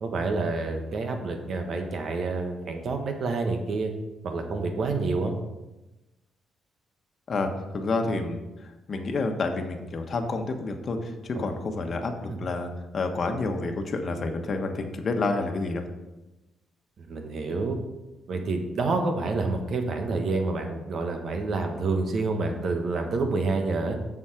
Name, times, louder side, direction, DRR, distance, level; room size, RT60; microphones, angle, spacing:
voice 1, 0.0-3.9 4.2-5.3 11.3-11.8 12.3-12.4 17.0-17.8 18.3-24.0, right 3 dB, 60° right, 5 dB, 1.3 m, -28 dB
voice 2, 7.3-15.8, left 3 dB, 45° left, 5 dB, 1.2 m, -29 dB
7.2 x 6.3 x 5.0 m, 1.0 s
cardioid pair, 90°, 0 cm